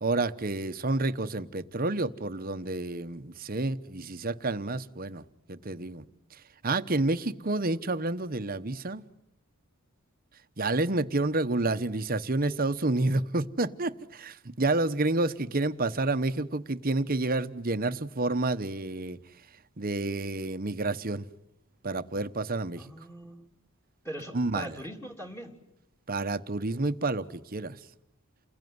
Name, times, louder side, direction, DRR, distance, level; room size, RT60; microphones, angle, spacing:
voice 1, 0.0-6.0 6.6-9.0 10.6-19.2 19.8-21.2 21.8-22.8 24.3-24.7 26.1-27.8, right 2 dB, 40° right, 1.1 m, -29 dB
voice 2, 22.8-23.5 24.0-25.6, equal, 10° left, 3.1 m, -41 dB
29.5 x 21.0 x 9.6 m
head